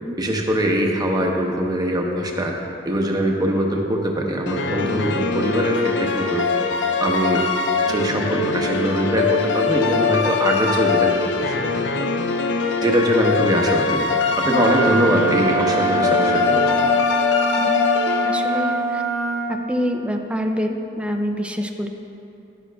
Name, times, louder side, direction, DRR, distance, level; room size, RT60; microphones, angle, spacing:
voice 1, 0.2-2.5 2.8-6.5 7.0-7.5 7.9-12.3 12.8-14.0 14.4-17.0, equal, 20° right, 0 dB, 0.9 m, -22 dB
sound 1, 4.5-18.8, left 5 dB, 75° left, 0.5 m, -22 dB
Wind instrument woodwind instrument, 14.4-19.4, right 1 dB, 35° left, 1.7 m, -22 dB
voice 2, 18.2-19.0 19.5-21.9, equal, 5° right, 4 dB, 0.5 m, -26 dB
11.0 x 11.0 x 2.3 m, 2.8 s
head